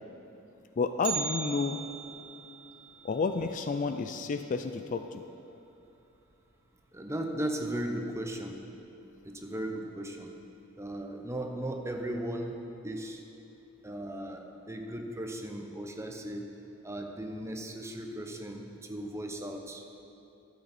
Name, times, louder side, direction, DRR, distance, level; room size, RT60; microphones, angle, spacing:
voice 1, 0.8-1.8 3.0-5.2, left 4 dB, 40° left, 8 dB, 0.3 m, -30 dB
Bell, 1.0-5.1 5.4-5.5 6.0-6.1 6.9-7.0 7.7-8.0 8.4-8.5, right 6 dB, 90° right, 1.1 m, -40 dB
voice 2, 6.9-8.7 9.2-10.4 10.8-13.2 13.8-16.5 16.8-19.8, right 1 dB, 15° right, 3 dB, 0.7 m, -37 dB
12.5 x 8.0 x 4.2 m, 2.8 s
head